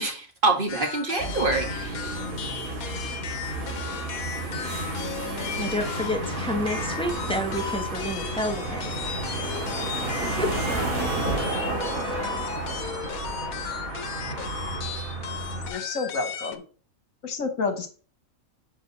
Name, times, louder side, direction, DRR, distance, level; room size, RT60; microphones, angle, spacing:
voice 1, 0.0-2.2, right 3 dB, 40° right, 3 dB, 1.9 m, -26 dB
sound 1, 0.7-16.6, left 8 dB, 90° left, 1.3 m, -36 dB
sound 2, 1.2-15.7, right 2 dB, 80° right, 2.6 m, -31 dB
voice 2, 5.6-8.9 10.4-10.5, equal, 5° left, 4 dB, 1.1 m, -29 dB
voice 3, 15.6-16.6 17.2-17.9, left 4 dB, 70° left, 7 dB, 1.8 m, -29 dB
7.5 x 5.0 x 4.1 m, 0.38 s
omnidirectional pair, 1.5 m